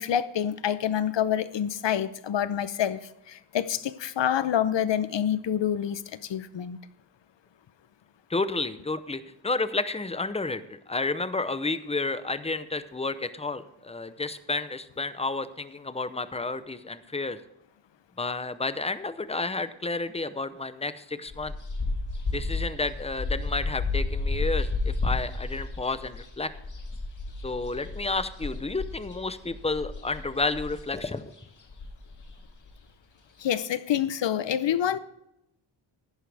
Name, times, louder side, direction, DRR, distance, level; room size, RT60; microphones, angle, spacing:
voice 1, 0.0-6.8 33.4-35.0, left 9 dB, 60° left, 0.8 m, -27 dB
voice 2, 8.3-17.4 18.2-21.5 22.3-26.5 27.4-31.3, left 3 dB, 15° left, 0.6 m, -31 dB
sound 1, 21.3-31.0 31.4-31.5 31.7-32.7, left 3 dB, 40° left, 1.8 m, -32 dB
14.5 x 11.5 x 3.4 m
wide cardioid pair, 125°, 49 cm